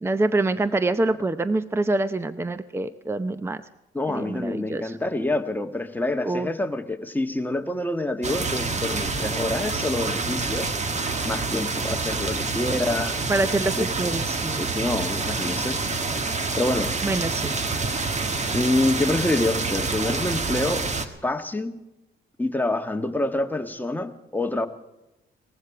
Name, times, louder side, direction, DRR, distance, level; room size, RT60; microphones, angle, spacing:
voice 1, 0.0-3.6 4.1-5.0 6.2-6.5 13.3-14.7 17.0-17.5, right 2 dB, 10° right, 13 dB, 0.7 m, -25 dB
voice 2, 3.9-10.7 11.2-13.2 13.8-14.1 14.6-15.8 16.5-16.9 18.5-20.9 21.2-21.8 22.4-24.7, left 2 dB, 10° left, 5 dB, 1.5 m, -27 dB
sound 1, 8.2-21.1, right 3 dB, 35° right, 1.6 m, -27 dB
19.5 x 15.0 x 4.9 m, 0.95 s
cardioid pair, 90°, 20 cm